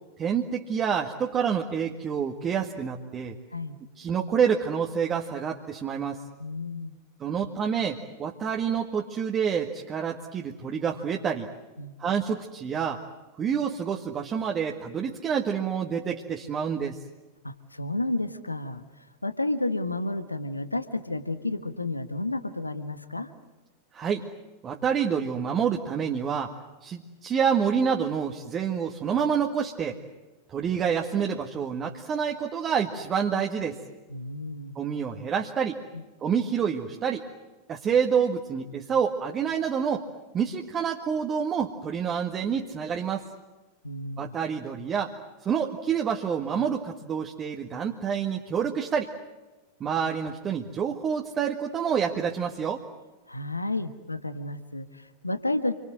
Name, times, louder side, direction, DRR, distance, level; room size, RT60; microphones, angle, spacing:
voice 1, 0.2-3.3 4.0-6.2 7.2-11.5 12.0-13.0 13.4-17.0 23.9-24.2 24.6-26.5 26.8-30.0 30.5-33.8 34.8-35.8 36.2-37.3 37.7-40.1 40.3-43.2 44.2-45.1 45.4-49.1 49.8-52.8, right 7 dB, 25° right, 1 dB, 1.9 m, -28 dB
voice 2, 6.4-7.0 11.8-11.9 17.4-18.8 19.2-23.3 34.1-34.8 35.9-36.0 43.8-44.4 53.3-55.7, left 2 dB, 85° left, 10 dB, 1.4 m, -31 dB
28.5 x 25.0 x 7.6 m, 1.2 s
figure-of-eight pair, 90°, 0 cm